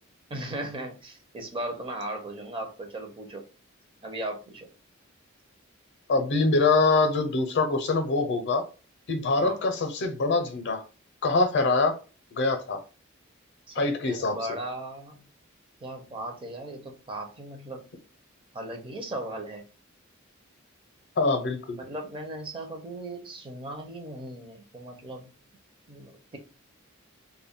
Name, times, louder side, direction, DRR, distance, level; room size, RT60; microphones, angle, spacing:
voice 1, 0.3-3.4 4.0-4.7 9.4-9.6 13.7-15.2 15.8-17.8 18.5-19.7 21.8-25.3 25.9-26.4, right 1 dB, 25° right, 0.5 m, -37 dB
voice 2, 6.1-8.7 9.1-10.8 11.2-11.9 12.3-12.8 13.7-14.4 21.2-21.8, left 3 dB, 60° left, 0.6 m, -24 dB
2.2 x 2.0 x 3.6 m
head